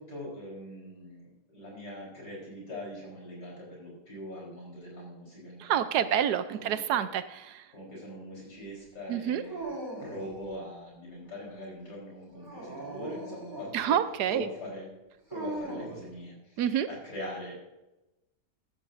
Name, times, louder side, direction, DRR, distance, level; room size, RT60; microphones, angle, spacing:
voice 1, 0.0-6.1 6.5-7.1 7.7-14.0 14.3-14.9 15.3-17.6, left 1 dB, 70° left, -3 dB, 4.6 m, -42 dB
voice 2, 5.6-7.7 9.1-9.4 13.7-14.5 16.6-16.9, right 9 dB, 75° right, 12 dB, 1.2 m, -28 dB
Dog, 9.4-10.4 12.3-13.8 15.3-16.1, right 2 dB, 55° right, 4.6 m, -39 dB
14.0 x 12.0 x 2.6 m, 0.96 s
omnidirectional pair, 1.8 m